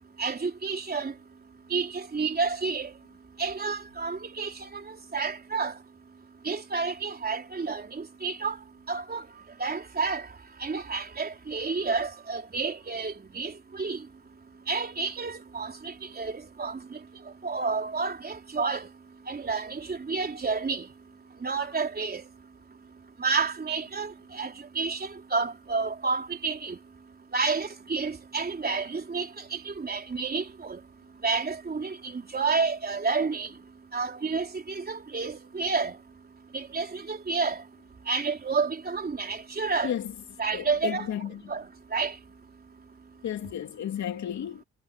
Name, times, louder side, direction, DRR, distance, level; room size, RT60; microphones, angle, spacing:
voice 1, 0.2-1.1 1.7-2.9 3.4-5.7 6.4-8.6 8.9-9.2 9.6-10.3 10.6-14.0 14.7-17.0 17.4-18.9 19.3-20.9 21.4-22.2 23.2-26.8 27.3-30.8 31.2-33.5 33.9-36.0 36.5-37.6 38.1-39.9 40.4-41.1 41.5-41.7 41.9-42.1, right 4 dB, 30° right, 3.7 m, -30 dB
voice 2, 39.8-40.1 40.5-41.4 43.2-44.6, left 10 dB, 65° left, 3.3 m, -33 dB
cardioid pair, 90°, 30 cm